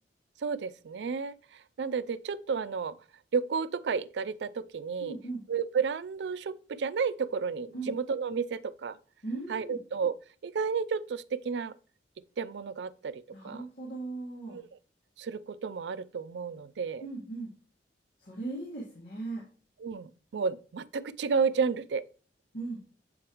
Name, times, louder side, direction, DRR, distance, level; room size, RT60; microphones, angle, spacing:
voice 1, 0.4-3.0 3.3-5.2 5.5-9.0 9.5-10.1 10.4-11.7 12.4-13.6 14.5-14.7 15.2-17.1 19.8-22.0, right 5 dB, 75° right, 0.4 m, -32 dB
voice 2, 5.0-5.4 7.7-7.9 9.2-9.8 13.3-14.6 17.0-17.5 18.2-19.4 22.5-22.8, right 3 dB, 70° left, 1.7 m, -38 dB
7.8 x 4.8 x 3.0 m
head